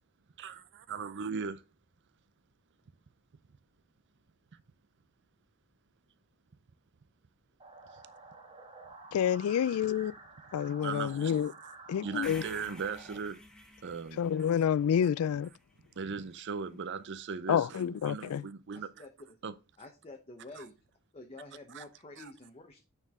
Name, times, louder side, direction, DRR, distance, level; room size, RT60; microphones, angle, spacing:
voice 1, 0.4-1.6 10.8-11.7 12.0-13.4 13.8-14.5 16.0-19.0 19.4-19.5 20.6-20.7 21.7-21.8 22.2-22.3, right 5 dB, 55° right, 0.5 m, -39 dB
sound 1, 7.6-13.2, right 3 dB, 25° right, 1.4 m, -52 dB
voice 2, 9.1-10.1 10.5-11.5 11.9-12.4 14.2-15.5 17.5-18.4, left 8 dB, 70° left, 0.3 m, -28 dB
sound 2, 12.2-16.4, left 1 dB, 5° left, 1.1 m, -52 dB
voice 3, 18.7-19.4 19.8-20.7 21.1-22.8, left 2 dB, 30° left, 0.9 m, -49 dB
8.8 x 4.6 x 3.6 m
head